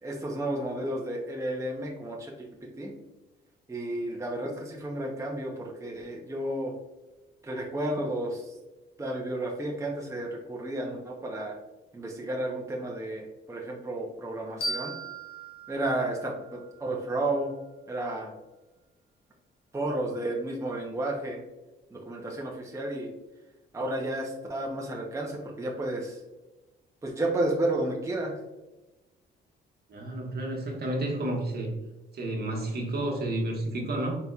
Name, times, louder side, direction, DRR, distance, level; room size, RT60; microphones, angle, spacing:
voice 1, 0.0-2.5 2.8-2.9 3.7-6.7 7.4-8.5 9.0-11.6 11.9-14.9 15.7-17.5 17.9-18.3 19.7-21.4 21.9-23.1 23.7-26.2 27.0-28.4, right 1 dB, 15° right, -2 dB, 0.8 m, -32 dB
sound 1, 14.6-17.4, right 1 dB, 55° left, 1.5 m, -38 dB
voice 2, 29.9-31.7 32.1-34.2, right 1 dB, 55° right, 0 dB, 1.2 m, -31 dB
4.1 x 4.1 x 2.4 m, 1.1 s
cardioid pair, 90°, 20 cm